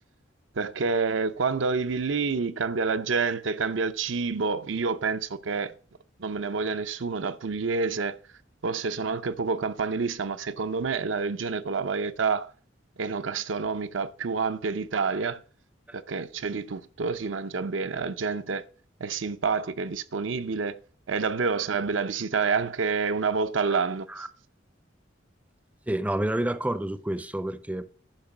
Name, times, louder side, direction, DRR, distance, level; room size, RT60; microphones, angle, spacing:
voice 1, 0.6-5.7 6.2-8.2 8.6-12.5 13.0-15.4 15.9-18.6 19.0-20.8 21.1-24.1, right 4 dB, 75° right, 0.6 m, -28 dB
voice 2, 25.9-27.8, right 1 dB, 10° right, 0.5 m, -29 dB
10.5 x 5.2 x 5.9 m
head